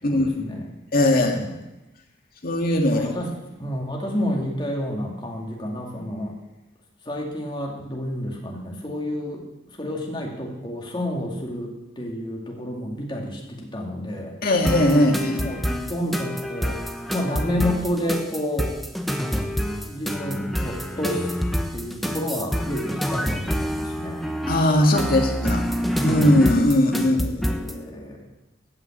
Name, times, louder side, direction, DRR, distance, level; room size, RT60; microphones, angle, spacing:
voice 1, 0.0-0.6 1.1-1.6 3.0-3.3 3.6-6.4 7.1-9.5 9.8-14.3 14.9-16.8 17.1-18.7 19.9-21.3 21.7-24.3 24.8-25.0 25.4-25.6 27.0-28.2, equal, 25° left, 0 dB, 2.3 m, -30 dB
voice 2, 0.9-1.4 2.4-3.1 14.4-15.4 24.5-25.6 26.0-27.6, left 1 dB, 45° left, 2 dB, 1.8 m, -19 dB
sound 1, 14.6-27.8, equal, ahead, 0.8 m, -27 dB
15.0 x 5.8 x 8.5 m, 0.99 s
head